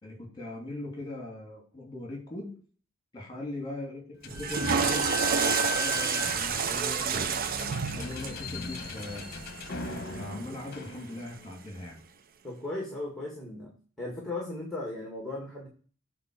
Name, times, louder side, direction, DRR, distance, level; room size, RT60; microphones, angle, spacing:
voice 1, 0.0-2.5 3.1-7.4 7.9-9.3 10.1-12.0, left 2 dB, 20° left, 0 dB, 3.0 m, -40 dB
Slam / Squeak, 4.2-11.5, left 3 dB, 50° left, 1.0 m, -37 dB
Water / Toilet flush, 4.3-10.5, right 6 dB, 45° right, 0.5 m, -30 dB
voice 2, 12.4-13.7 14.0-15.7, left 2 dB, 5° left, -2 dB, 2.2 m, -36 dB
8.8 x 4.7 x 6.5 m, 0.41 s
head